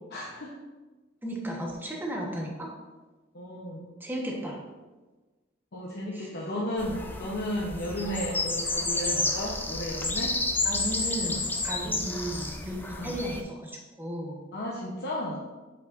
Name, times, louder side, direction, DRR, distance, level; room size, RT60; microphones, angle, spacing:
voice 1, 0.1-0.6 3.3-3.9 5.7-10.4 11.8-12.1 13.0-13.2 14.5-15.4, equal, 60° left, -4 dB, 0.9 m, -34 dB
voice 2, 1.2-2.7 4.0-4.6 6.1-6.3 10.6-14.4, equal, 10° right, -2 dB, 1.1 m, -34 dB
sound 1, 6.8-13.4, left 2 dB, 10° left, 0.5 m, -31 dB
7.5 x 5.7 x 2.5 m, 1.2 s
head